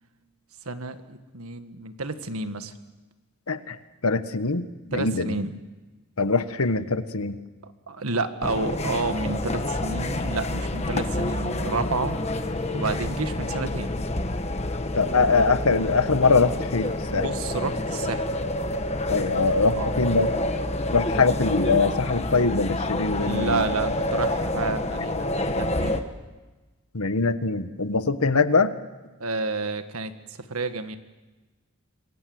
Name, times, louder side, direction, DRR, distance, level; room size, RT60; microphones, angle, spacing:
voice 1, 0.6-2.7 4.9-5.5 7.6-12.2 12.7-13.9 17.2-18.3 19.7-19.9 23.2-26.0 29.2-31.0, right 3 dB, 85° right, 9 dB, 1.7 m, -30 dB
voice 2, 4.0-5.3 6.2-7.4 15.0-17.2 19.1-20.3 20.9-23.6 26.9-28.7, left 4 dB, 85° left, 11 dB, 1.4 m, -23 dB
sound 1, 8.4-26.0, left 1 dB, 30° left, 1.4 m, -28 dB
26.5 x 23.5 x 7.9 m, 1.2 s
head